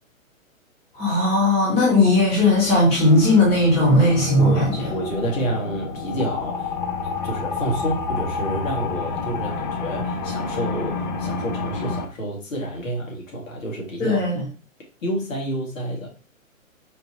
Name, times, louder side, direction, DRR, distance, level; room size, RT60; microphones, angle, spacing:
voice 1, 0.9-4.9 14.0-14.4, left 1 dB, 15° left, -6 dB, 1.4 m, -17 dB
sound 1, 1.4-12.1, left 4 dB, 35° left, 0.5 m, -30 dB
voice 2, 4.4-6.7 7.2-14.2 15.0-16.1, right 1 dB, 70° left, -2 dB, 1.8 m, -29 dB
4.4 x 2.8 x 2.9 m, 0.36 s
hypercardioid pair, 150°, 41 cm